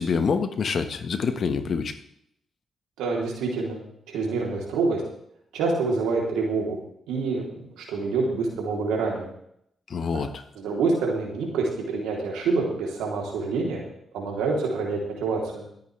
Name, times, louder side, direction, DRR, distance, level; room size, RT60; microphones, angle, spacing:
voice 1, 0.0-1.9 9.9-10.4, left 5 dB, 60° left, 8 dB, 1.5 m, -26 dB
voice 2, 3.0-3.8 4.1-5.0 5.5-6.8 7.1-9.3 10.1-10.2 10.6-13.8 14.1-15.6, right 4 dB, 90° right, -1 dB, 3.5 m, -27 dB
25.0 x 9.1 x 3.4 m, 0.72 s
supercardioid pair, 55°, 0 cm